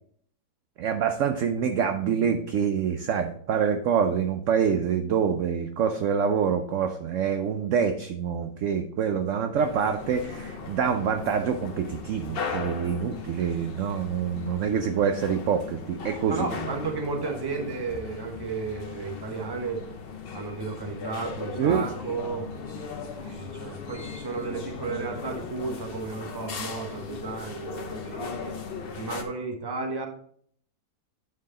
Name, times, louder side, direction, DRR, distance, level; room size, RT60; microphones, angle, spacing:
voice 1, 0.8-16.5 21.6-21.9, right 7 dB, 65° right, 7 dB, 0.8 m, -26 dB
sound 1, 9.5-29.2, left 5 dB, 50° left, 0.8 m, -38 dB
voice 2, 16.3-19.8 20.3-22.4 23.2-28.5 28.9-30.1, right 4 dB, 20° right, 2 dB, 0.8 m, -33 dB
9.4 x 4.6 x 3.7 m, 0.62 s
omnidirectional pair, 1.7 m